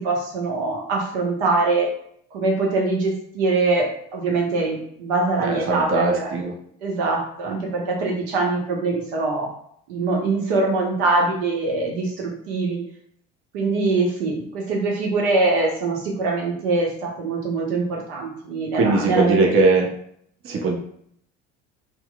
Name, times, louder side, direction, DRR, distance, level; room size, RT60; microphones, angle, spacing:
voice 1, 0.0-1.9 2.3-6.3 6.8-9.5 9.9-12.8 13.5-19.4, right 3 dB, 75° right, -1 dB, 0.8 m, -23 dB
voice 2, 5.4-6.5 18.7-19.9 20.4-20.8, right 3 dB, 40° right, 0 dB, 0.6 m, -20 dB
2.9 x 2.0 x 2.2 m, 0.67 s
hypercardioid pair, 65°, 33 cm